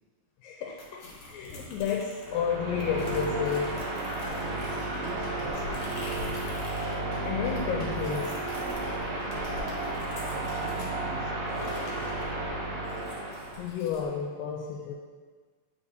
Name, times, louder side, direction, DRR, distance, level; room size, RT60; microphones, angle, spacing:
voice 1, 0.4-3.8 7.2-8.4 13.6-15.0, left 7 dB, 80° left, 0 dB, 2.2 m, -31 dB
sound 1, 0.8-2.4 2.8-6.9 7.2-10.9 11.5-14.0, left 2 dB, 65° left, 1.8 m, -45 dB
sound 2, 2.1-13.7, right 2 dB, 60° right, 2.0 m, -33 dB
Computer keyboard, 4.2-10.9, right 1 dB, 40° right, 1.2 m, -51 dB
voice 2, 4.7-6.4 10.3-12.7, right 6 dB, 85° right, 1 dB, 2.3 m, -45 dB
8.5 x 4.9 x 2.7 m, 1.5 s
omnidirectional pair, 4.1 m